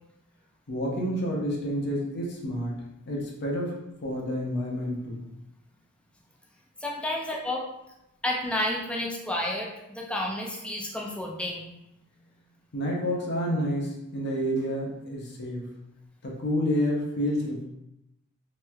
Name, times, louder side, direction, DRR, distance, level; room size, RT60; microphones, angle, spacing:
voice 1, 0.7-3.7 4.0-5.2 12.7-15.7 16.2-17.6, equal, 50° left, -2 dB, 0.7 m, -29 dB
voice 2, 6.8-7.6 8.2-11.7, left 1 dB, 5° left, -2 dB, 0.4 m, -31 dB
3.2 x 3.1 x 2.3 m, 0.88 s
head